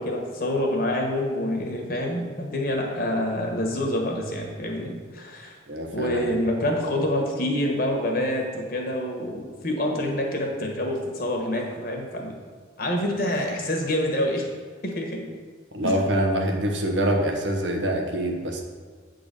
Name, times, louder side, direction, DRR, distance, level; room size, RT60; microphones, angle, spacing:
voice 1, 0.0-5.6 5.9-12.3 12.8-14.5 14.8-15.3 15.8-15.9, left 1 dB, 50° left, 1 dB, 1.4 m, -27 dB
voice 2, 5.7-6.2 15.7-18.6, right 1 dB, 80° right, 2 dB, 1.2 m, -25 dB
8.3 x 4.0 x 6.9 m, 1.5 s
head